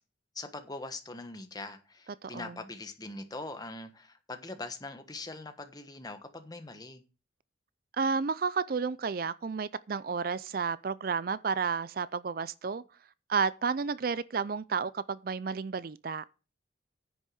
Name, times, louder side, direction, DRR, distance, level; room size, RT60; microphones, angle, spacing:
voice 1, 0.3-7.0, left 2 dB, 20° left, 1.3 m, -42 dB
voice 2, 2.2-2.6 8.0-12.8 13.3-16.2, right 5 dB, 50° right, 0.4 m, -31 dB
10.0 x 6.3 x 6.4 m
head